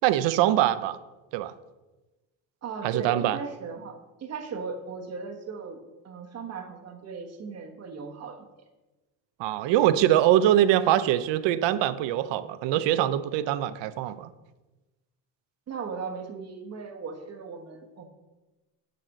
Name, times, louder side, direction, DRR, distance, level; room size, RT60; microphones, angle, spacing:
voice 1, 0.0-1.0 1.3-1.5 2.8-3.4 9.4-14.3, right 12 dB, 75° right, 13 dB, 0.7 m, -23 dB
voice 2, 2.6-8.5 15.7-18.1, right 5 dB, 35° right, 4 dB, 1.1 m, -37 dB
9.1 x 4.2 x 6.4 m, 1.1 s
cardioid pair, 155°, 43 cm